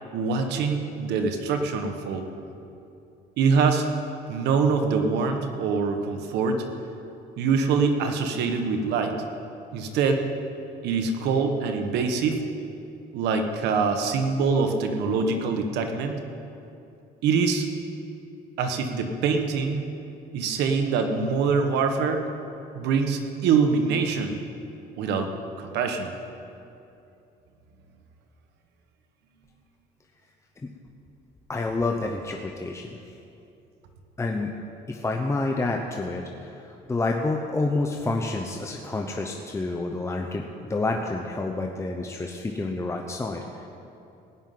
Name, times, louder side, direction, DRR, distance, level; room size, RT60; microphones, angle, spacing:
voice 1, 0.1-2.3 3.4-3.8 4.3-6.6 7.4-9.2 9.7-10.2 10.8-12.4 13.1-16.2 17.2-17.7 18.6-19.8 20.3-22.2 22.7-24.4 25.0-25.3 25.6-26.1, right 5 dB, 85° right, 5 dB, 1.4 m, -24 dB
voice 2, 31.5-33.0 34.2-34.5 34.9-43.7, left 2 dB, 15° left, 2 dB, 0.9 m, -29 dB
17.0 x 5.6 x 9.3 m, 2.8 s
cardioid pair, 110°, 17 cm